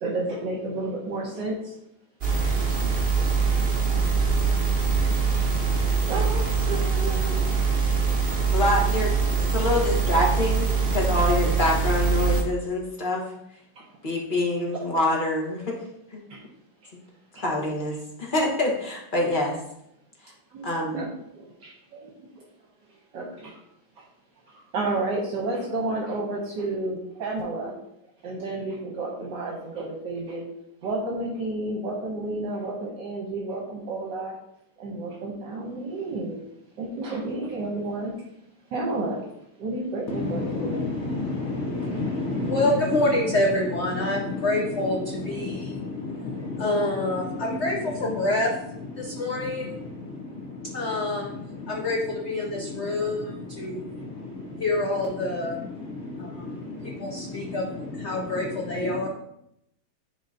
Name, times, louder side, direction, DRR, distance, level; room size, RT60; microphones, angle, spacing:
voice 1, 0.0-1.7 6.1-7.5 13.7-13.8 14.7-14.8 16.3-16.4 16.8-16.9 17.3-17.4 20.5-21.1 21.9-22.5 23.1-23.6 23.9-24.0 24.5-27.7 28.2-30.4 30.8-34.3 34.8-36.4 36.8-38.1 38.7-39.3 39.6-40.8, right 2 dB, 65° right, -1 dB, 1.5 m, -31 dB
sound 1, 2.2-12.4, right 5 dB, 45° right, 0.7 m, -23 dB
voice 2, 8.5-9.1 9.4-13.2 14.0-15.7 16.1-16.2 17.4-19.6 20.6-20.9, left 1 dB, 30° left, -2 dB, 1.2 m, -25 dB
voice 3, 40.1-59.1, left 2 dB, 75° left, 0 dB, 0.6 m, -27 dB
10.0 x 3.9 x 2.7 m, 0.78 s
omnidirectional pair, 2.2 m